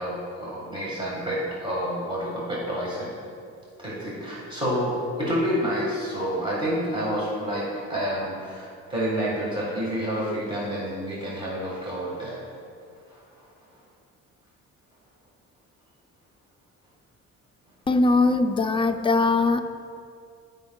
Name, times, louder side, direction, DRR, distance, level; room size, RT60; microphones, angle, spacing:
voice 1, 0.0-3.1 3.8-12.4 13.1-13.2, equal, 15° right, -6 dB, 1.8 m, -29 dB
voice 2, 17.9-19.6, left 3 dB, 15° left, 7 dB, 0.4 m, -21 dB
13.5 x 5.3 x 2.4 m, 2.4 s
cardioid pair, 90°, 30 cm